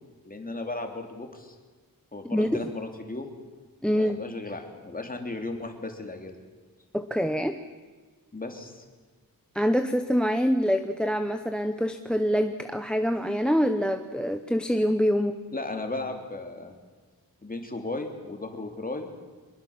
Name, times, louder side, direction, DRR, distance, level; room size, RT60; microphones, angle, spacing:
voice 1, 0.2-1.5 2.1-3.3 3.9-6.4 8.3-8.8 15.5-16.7 17.4-19.1, left 2 dB, 25° left, 4 dB, 3.2 m, -35 dB
voice 2, 3.8-4.2 6.9-7.6 9.5-15.3, equal, 5° left, 9 dB, 0.9 m, -25 dB
24.0 x 21.5 x 7.4 m, 1.4 s
wide cardioid pair, 140°, 35 cm